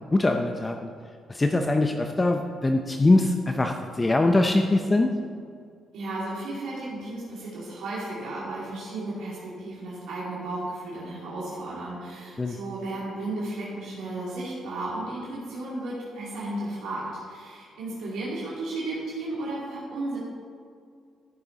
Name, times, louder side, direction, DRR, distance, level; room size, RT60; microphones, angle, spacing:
voice 1, 0.1-0.9 1.3-5.1 12.4-12.6, left 2 dB, 20° left, 5 dB, 0.6 m, -22 dB
voice 2, 5.9-20.2, right 2 dB, 85° right, -7 dB, 2.6 m, -34 dB
13.5 x 6.8 x 4.0 m, 2.3 s
cardioid pair, 90°, 0 cm